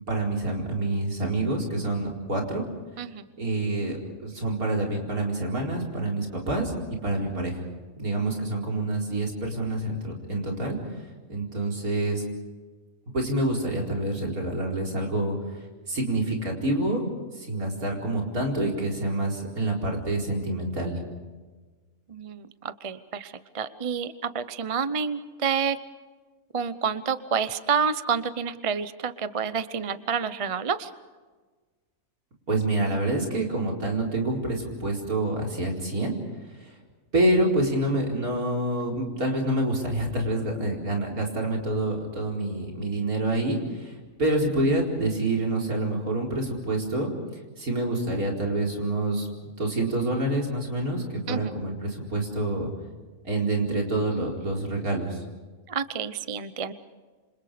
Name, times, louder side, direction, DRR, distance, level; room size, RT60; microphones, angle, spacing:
voice 1, 0.1-2.6 3.4-6.7 7.0-7.6 8.0-11.0 11.3-12.2 13.1-15.4 15.9-17.0 17.3-21.0 32.5-36.1 36.6-36.7 37.1-47.1 47.6-49.3 49.6-52.7 53.2-55.2, right 2 dB, 70° right, 0 dB, 5.0 m, -27 dB
voice 2, 22.1-25.8 26.5-30.9 51.3-51.6 55.7-56.7, right 6 dB, 30° right, 13 dB, 0.6 m, -29 dB
28.0 x 26.5 x 5.1 m, 1.3 s
omnidirectional pair, 1.6 m